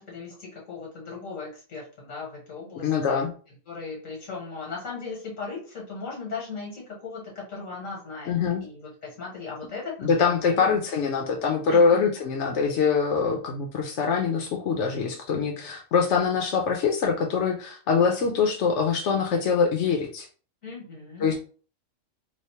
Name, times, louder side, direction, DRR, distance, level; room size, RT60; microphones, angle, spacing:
voice 1, 0.0-3.2 3.7-8.3 8.6-10.7 11.7-12.0 20.6-21.3, left 4 dB, 85° left, -2 dB, 1.6 m, -38 dB
voice 2, 2.8-3.3 8.3-8.6 10.0-20.3 21.2-21.4, left 5 dB, 65° left, 1 dB, 0.9 m, -24 dB
3.1 x 2.0 x 4.1 m, 0.39 s
omnidirectional pair, 1.3 m